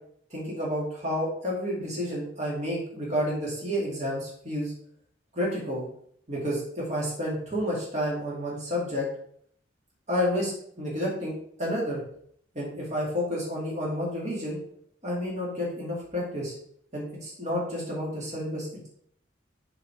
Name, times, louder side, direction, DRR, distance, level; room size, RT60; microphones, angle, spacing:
voice 1, 0.3-4.7 5.3-5.8 6.3-9.1 10.1-10.5 10.8-12.0 12.5-14.6 15.0-16.5 16.9-18.9, equal, 40° right, -4 dB, 2.1 m, -30 dB
5.7 x 5.2 x 4.4 m, 0.64 s
head